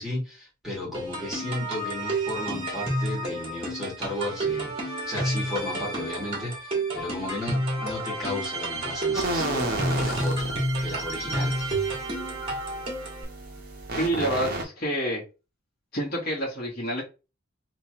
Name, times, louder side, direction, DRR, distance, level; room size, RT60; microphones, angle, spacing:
voice 1, 0.0-11.7, left 1 dB, ahead, 2.0 m, -34 dB
sound 1, 0.9-13.2, right 1 dB, 25° right, 1.6 m, -30 dB
sound 2, 6.9-13.0, left 3 dB, 70° left, 1.1 m, -40 dB
sound 3, 9.1-14.6, right 2 dB, 45° right, 0.9 m, -33 dB
voice 2, 13.9-15.2 15.9-17.0, right 1 dB, 45° left, 1.4 m, -28 dB
3.3 x 3.1 x 2.9 m
head